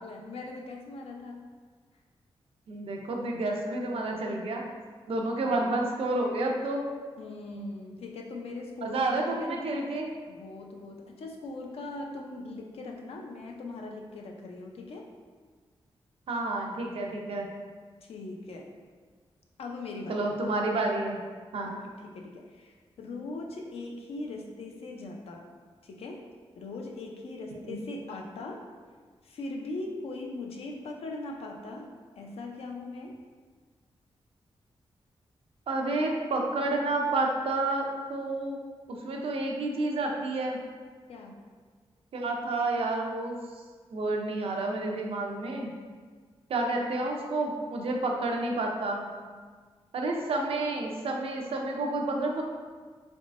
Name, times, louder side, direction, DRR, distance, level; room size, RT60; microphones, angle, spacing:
voice 1, 0.0-1.5 5.4-5.7 7.2-9.6 10.3-15.1 18.0-18.7 19.6-20.3 22.0-25.4 25.8-26.2 26.6-28.6 29.2-31.9 32.2-33.2 41.1-41.4, left 2 dB, 80° left, 1 dB, 0.5 m, -40 dB
voice 2, 2.7-4.6 5.1-6.9 8.8-10.1 16.3-17.5 20.1-21.2 21.5-21.8 27.7-27.8 35.7-38.6 38.9-40.6 42.1-43.4 43.9-45.7 46.5-49.1 49.9-52.4, right 2 dB, 70° right, 1 dB, 0.5 m, -30 dB
4.0 x 3.5 x 2.5 m, 1.5 s
wide cardioid pair, 165°, 10 cm